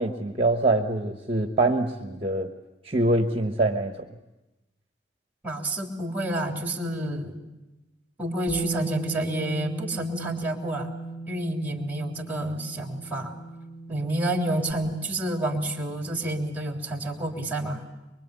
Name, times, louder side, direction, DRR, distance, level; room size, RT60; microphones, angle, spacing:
voice 1, 0.0-2.5 2.8-3.9, right 2 dB, 30° right, 4 dB, 1.3 m, -24 dB
voice 2, 5.4-7.4 8.2-10.9 11.3-13.3 13.9-17.8, right 1 dB, 10° right, 2 dB, 3.3 m, -29 dB
Bass guitar, 8.5-14.7, right 3 dB, 40° left, 1.8 m, -36 dB
24.5 x 24.0 x 8.3 m, 1.0 s
head